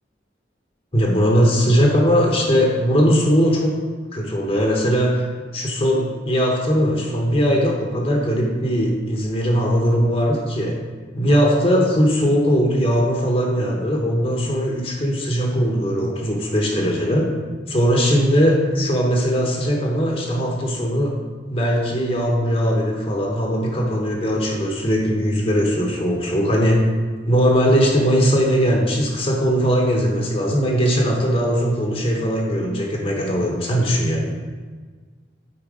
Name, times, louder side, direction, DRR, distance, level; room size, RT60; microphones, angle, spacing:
voice 1, 0.9-3.7 4.1-5.2 5.5-10.7 11.1-17.3 17.7-21.1 21.5-26.9 27.2-34.3, equal, 30° left, 0 dB, 1.0 m, -19 dB
8.7 x 4.6 x 4.8 m, 1.5 s
head